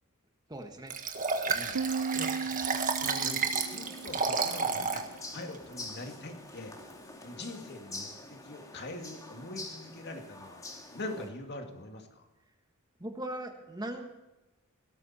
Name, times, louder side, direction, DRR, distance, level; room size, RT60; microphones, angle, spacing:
voice 1, 0.5-0.9 13.0-14.2, right 1 dB, 20° right, 5 dB, 1.4 m, -39 dB
Liquid, 0.9-5.1 5.5-5.6, right 5 dB, 40° right, 1.6 m, -31 dB
Piano, 1.8-5.2, right 5 dB, 85° right, 0.7 m, -37 dB
voice 2, 2.1-2.4 2.6-6.8 7.2-10.6 10.9-12.3, left 2 dB, 50° left, 3 dB, 2.2 m, -43 dB
sound 1, 3.5-11.3, left 2 dB, 15° left, 2.6 m, -46 dB
17.5 x 13.5 x 4.3 m, 1.0 s
head